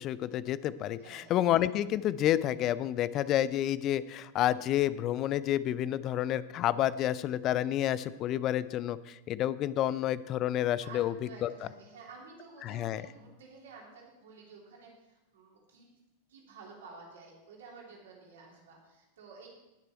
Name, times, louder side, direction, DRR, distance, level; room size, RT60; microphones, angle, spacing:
voice 1, 0.0-11.1 11.4-11.5 12.6-13.1, left 12 dB, 35° left, 17 dB, 0.5 m, -29 dB
voice 2, 1.0-1.3 10.8-15.9 16.3-19.5, right 4 dB, 60° right, -2 dB, 3.3 m, -51 dB
19.0 x 6.8 x 4.5 m, 0.99 s
figure-of-eight pair, 90°, 0 cm